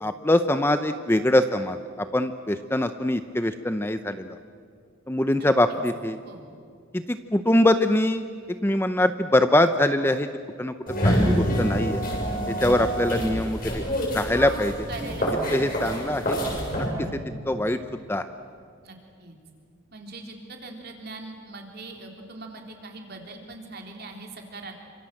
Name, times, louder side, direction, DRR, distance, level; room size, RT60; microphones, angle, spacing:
voice 1, 0.0-1.8 2.1-4.3 5.1-6.2 6.9-8.2 8.6-10.3 10.6-10.7 11.0-12.0 12.5-13.8 14.1-14.9 15.5-16.4 17.5-17.8 18.1-18.2, left 1 dB, 10° left, 10 dB, 0.6 m, -23 dB
voice 2, 5.4-5.8 6.3-6.5 14.9-15.8 18.8-19.4 19.9-24.7, right 3 dB, 50° right, 2 dB, 3.8 m, -41 dB
sound 1, 10.9-16.9, equal, 45° left, 7.2 m, -26 dB
29.0 x 26.0 x 7.8 m, 2.2 s
head